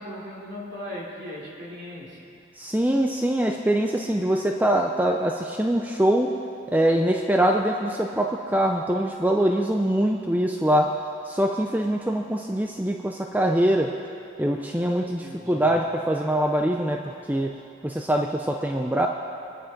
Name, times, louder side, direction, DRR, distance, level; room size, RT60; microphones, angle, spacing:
voice 1, 0.0-2.3 15.2-15.8, left 1 dB, 55° right, -5 dB, 3.6 m, -38 dB
voice 2, 2.6-6.4 6.7-11.0 11.3-14.0 14.4-17.6 17.8-19.1, right 1 dB, 10° right, 2 dB, 0.5 m, -23 dB
25.5 x 10.0 x 4.6 m, 2.6 s
head